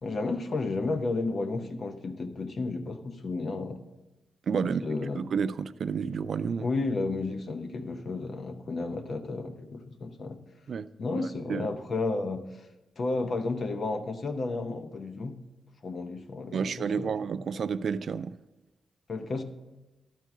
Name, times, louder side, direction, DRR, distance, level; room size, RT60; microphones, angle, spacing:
voice 1, 0.0-3.8 4.6-5.2 6.6-10.4 11.0-12.6 13.0-15.4 15.8-17.1 19.1-19.4, left 3 dB, 50° left, 0.8 m, -32 dB
voice 2, 4.5-4.8 5.1-6.7 10.7-10.9 11.2-11.7 16.5-18.4, right 6 dB, 60° right, 0.3 m, -30 dB
12.0 x 4.5 x 6.1 m
wide cardioid pair, 115°, 0 cm